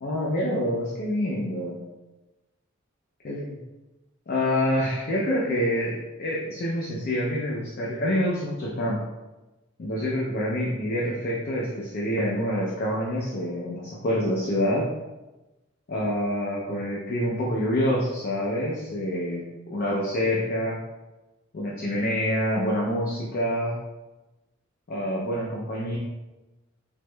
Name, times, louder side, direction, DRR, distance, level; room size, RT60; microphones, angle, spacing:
voice 1, 0.0-1.8 3.2-3.6 4.3-9.0 9.8-14.9 15.9-19.4 19.7-20.8 21.5-23.8 24.9-26.0, equal, 50° left, -4 dB, 0.5 m, -27 dB
3.4 x 3.0 x 2.2 m, 1.1 s
head